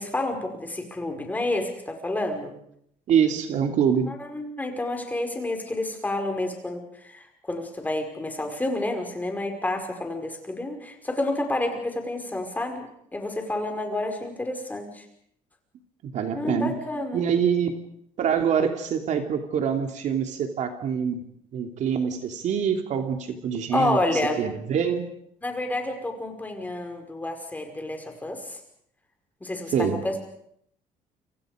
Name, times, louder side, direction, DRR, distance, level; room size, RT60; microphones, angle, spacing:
voice 1, 0.0-2.5 4.1-12.9 13.1-15.0 16.3-17.2 23.7-24.5 25.4-28.6 29.4-30.2, left 2 dB, 10° left, 4 dB, 5.2 m, -29 dB
voice 2, 3.1-4.2 16.0-16.7 17.1-17.8 18.2-21.2 21.5-25.1 29.7-30.0, right 7 dB, 60° right, 4 dB, 2.9 m, -25 dB
29.5 x 26.5 x 5.2 m, 0.71 s
cardioid pair, 140°, 14 cm